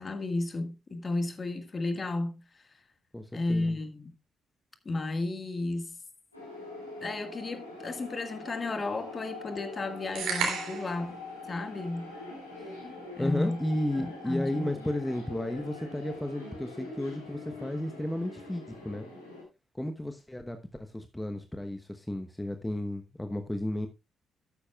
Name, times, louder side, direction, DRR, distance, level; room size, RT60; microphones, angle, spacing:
voice 1, 0.0-2.6 3.3-4.1 4.8-6.0 7.0-11.2 11.5-12.1 13.2-13.6 14.0-14.7, left 2 dB, 35° left, 1.8 m, -33 dB
voice 2, 3.1-3.8 13.2-19.1 19.7-23.9, left 1 dB, 10° left, 1.1 m, -33 dB
sound 1, 6.3-19.4, left 2 dB, 90° left, 3.2 m, -43 dB
sound 2, 10.2-11.0, right 5 dB, 65° right, 3.0 m, -31 dB
13.0 x 10.0 x 2.4 m
figure-of-eight pair, 40°, 0 cm